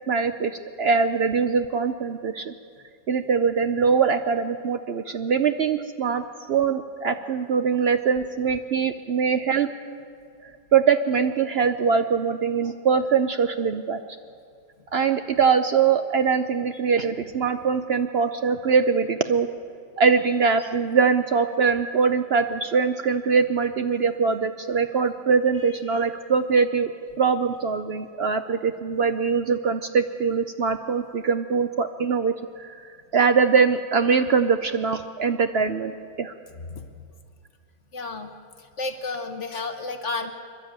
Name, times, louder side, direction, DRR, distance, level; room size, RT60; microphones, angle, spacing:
voice 1, 0.1-2.5 3.1-9.7 10.7-14.0 14.9-19.5 20.0-26.9 27.2-32.9 33.1-36.3, right 5 dB, 85° right, 8 dB, 0.5 m, -22 dB
voice 2, 25.6-26.1 36.7-36.9 37.9-38.3 38.6-40.3, left 3 dB, 45° left, 7 dB, 1.2 m, -32 dB
28.0 x 11.5 x 8.8 m, 2.3 s
omnidirectional pair, 1.9 m